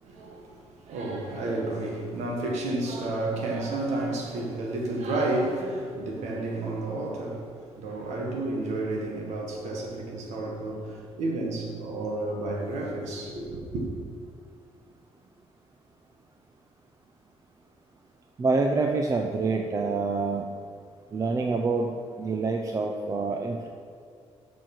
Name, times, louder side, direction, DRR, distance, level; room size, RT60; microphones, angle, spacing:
voice 1, 0.0-13.8, right 2 dB, 85° right, 1.7 m, -31 dB
voice 2, 18.4-20.5 21.1-23.7, right 3 dB, 30° right, 0.6 m, -27 dB
6.8 x 6.3 x 6.1 m
cardioid pair, 115°, 12 cm